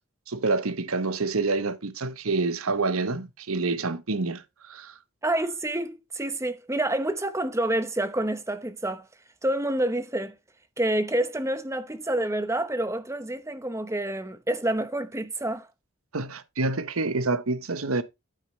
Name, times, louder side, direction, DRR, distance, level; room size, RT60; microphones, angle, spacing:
voice 1, 0.3-4.9 16.1-18.0, right 3 dB, 80° right, 1.1 m, -27 dB
voice 2, 5.2-9.1 9.4-10.4 10.8-15.7, right 1 dB, 15° right, 0.9 m, -28 dB
9.2 x 8.7 x 3.2 m
head